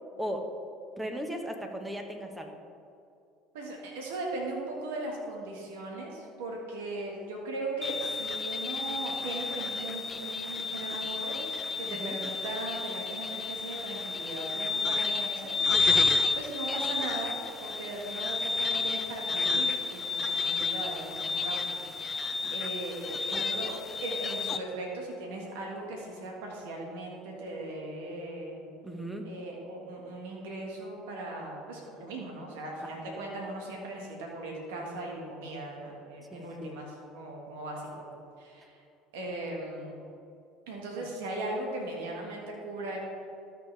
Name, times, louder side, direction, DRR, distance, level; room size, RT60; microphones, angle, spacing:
voice 1, 0.2-0.5 1.0-2.5 11.9-12.2 28.8-29.3 32.8-33.1 36.3-36.7, equal, 10° right, 4 dB, 1.3 m, -37 dB
voice 2, 3.5-11.4 11.8-28.6 29.2-38.1 38.4-38.8 39.1-40.0 40.7-43.0, right 2 dB, 80° right, -1 dB, 1.7 m, -38 dB
sound 1, 7.8-24.6, left 4 dB, 30° left, 0.6 m, -31 dB
13.0 x 6.7 x 3.4 m, 2.5 s
hypercardioid pair, 75°, 0 cm